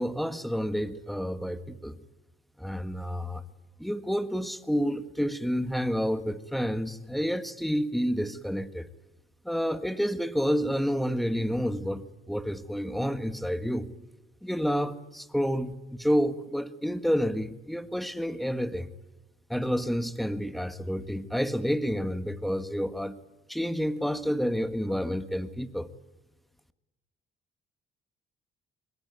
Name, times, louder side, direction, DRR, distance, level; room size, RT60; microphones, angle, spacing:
voice 1, 0.0-2.0 2.6-3.4 3.8-8.9 9.4-13.9 14.4-18.9 19.5-23.2 23.5-25.9, equal, ahead, 10 dB, 1.7 m, -29 dB
24.5 x 22.5 x 9.4 m, 1.0 s
cardioid pair, 90°, 20 cm